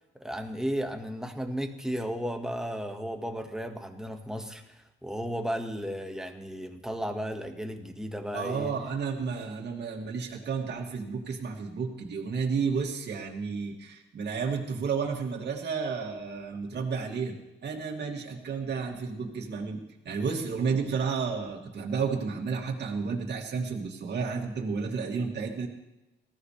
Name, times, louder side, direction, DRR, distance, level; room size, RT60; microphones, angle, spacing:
voice 1, 0.1-8.7, equal, 5° right, 4 dB, 1.7 m, -34 dB
voice 2, 8.3-17.3 17.6-25.7, right 5 dB, 60° right, 0 dB, 2.6 m, -32 dB
19.0 x 15.0 x 3.4 m, 0.97 s
cardioid pair, 90°, 20 cm